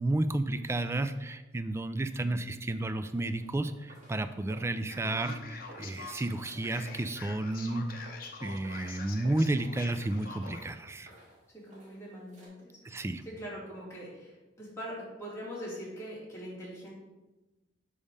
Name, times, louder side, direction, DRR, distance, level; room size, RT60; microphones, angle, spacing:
voice 1, 0.0-8.1 8.4-11.1 12.8-13.2, right 2 dB, 15° right, 10 dB, 0.3 m, -32 dB
sound 1, 3.3-12.5, right 1 dB, 40° right, 2.1 m, -56 dB
Male speech man speaking, 4.9-10.7, left 4 dB, 50° left, 0.8 m, -45 dB
voice 2, 4.9-5.4 11.6-16.9, equal, 15° left, -7 dB, 2.4 m, -43 dB
5.2 x 5.0 x 5.4 m, 1.1 s
head